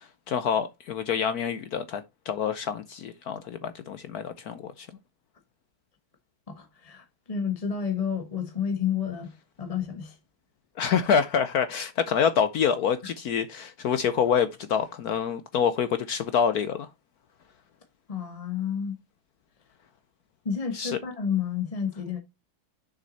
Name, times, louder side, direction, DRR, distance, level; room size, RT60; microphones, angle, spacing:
voice 1, 0.0-4.9 10.8-16.9 20.7-21.0, left 7 dB, 70° left, 0.9 m, -27 dB
voice 2, 6.5-9.3 9.6-10.2 13.0-13.1 18.1-18.9 20.4-22.2, left 7 dB, 25° left, 0.9 m, -30 dB
6.7 x 6.2 x 4.0 m
omnidirectional pair, 2.2 m